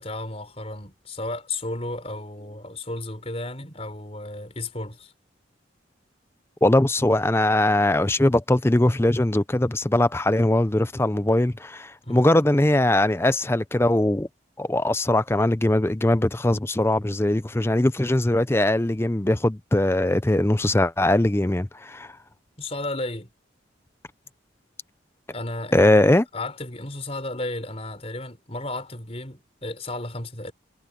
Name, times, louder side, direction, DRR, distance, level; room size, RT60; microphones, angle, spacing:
voice 1, 0.0-5.1 12.0-12.2 22.6-23.3 25.3-25.9 26.3-30.5, left 2 dB, 30° left, 4.6 m, -33 dB
voice 2, 6.6-14.3 14.6-22.1 25.7-26.2, left 1 dB, 10° left, 0.5 m, -21 dB
head